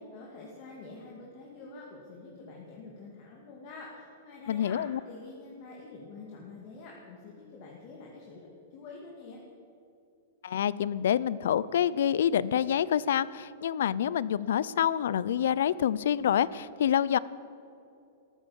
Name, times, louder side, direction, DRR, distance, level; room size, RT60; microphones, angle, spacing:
voice 1, 0.0-4.8 5.1-9.4, left 3 dB, 35° left, -2 dB, 2.2 m, -47 dB
voice 2, 4.5-5.0 10.4-17.2, left 9 dB, 70° left, 19 dB, 0.5 m, -27 dB
14.0 x 14.0 x 7.1 m, 2.7 s
supercardioid pair, 175°, 0 cm